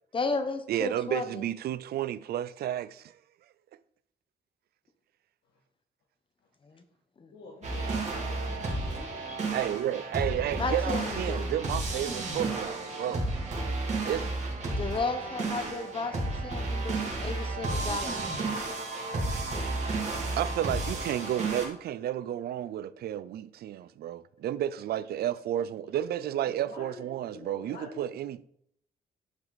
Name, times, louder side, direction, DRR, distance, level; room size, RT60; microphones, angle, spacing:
voice 1, 0.1-1.4 6.6-6.8 7.2-7.3 9.3-9.4 10.6-11.5 13.0-13.2 14.8-18.3, left 4 dB, 30° left, 1.1 m, -34 dB
voice 2, 0.7-3.2 9.5-13.3 14.0-14.3 17.8-18.2 20.4-28.4, right 11 dB, 75° right, 0.5 m, -32 dB
voice 3, 7.3-9.2 10.3-10.7 19.7-20.7 26.0-28.0, left 3 dB, 75° left, 2.0 m, -47 dB
sound 1, 7.6-21.7, right 2 dB, 45° right, 2.6 m, -32 dB
10.5 x 5.8 x 4.1 m
cardioid pair, 125°, 16 cm